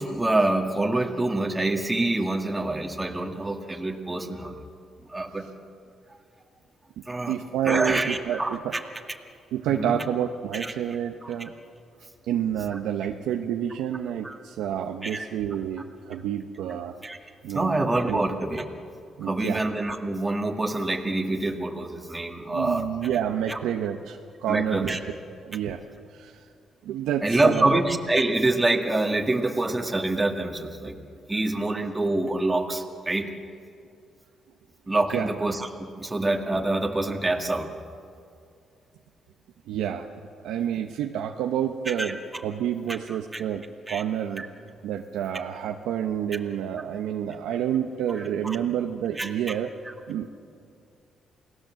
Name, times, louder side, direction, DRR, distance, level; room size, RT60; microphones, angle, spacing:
voice 1, 0.0-4.6 5.1-5.5 7.1-7.4 7.6-8.8 9.7-10.0 10.5-10.7 11.2-11.3 12.7-12.8 14.2-14.4 15.0-15.3 16.7-17.2 17.5-18.6 19.2-22.9 23.5-23.6 24.5-25.0 27.2-31.0 31.3-33.3 34.9-37.7 41.9-42.1 43.1-43.4 43.9-44.0 44.4-44.5 48.1-48.6 49.2-49.3 49.8-49.9, right 2 dB, 15° right, 2 dB, 2.1 m, -26 dB
voice 2, 7.0-8.7 9.5-11.5 12.3-17.0 17.4-17.8 18.1-18.3 19.2-19.6 22.5-25.0 25.4-25.8 26.1-26.4 26.8-27.8 31.6-31.7 35.1-35.3 39.7-40.1 40.4-43.6 43.9-44.5 44.8-49.7 50.1-50.3, right 9 dB, 90° right, 4 dB, 1.0 m, -29 dB
28.5 x 18.5 x 7.6 m, 2.4 s
cardioid pair, 90°, 0 cm